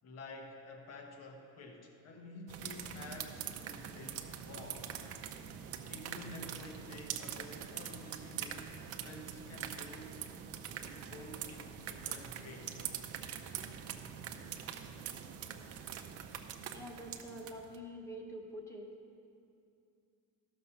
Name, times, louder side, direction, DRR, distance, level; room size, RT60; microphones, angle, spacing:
voice 1, 0.0-5.0 5.9-10.2 10.8-12.9, left 2 dB, 50° left, 3 dB, 1.3 m, -50 dB
sound 1, 2.5-17.8, right 9 dB, 45° right, 0.6 m, -44 dB
voice 2, 16.7-18.9, equal, 10° left, 2 dB, 1.0 m, -46 dB
13.0 x 6.6 x 5.8 m, 2.5 s
cardioid pair, 145°, 33 cm